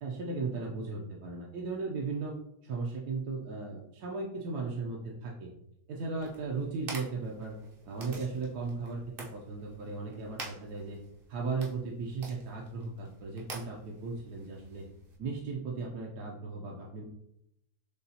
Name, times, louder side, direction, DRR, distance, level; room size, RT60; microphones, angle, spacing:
voice 1, 0.0-2.4 2.6-5.5 5.9-7.6 7.9-11.0 11.3-14.9 15.2-17.0, right 4 dB, 70° right, -2 dB, 1.1 m, -36 dB
sound 1, 6.2-15.2, right 3 dB, 50° right, 0.7 m, -48 dB
6.6 x 2.3 x 2.8 m, 0.80 s
omnidirectional pair, 1.8 m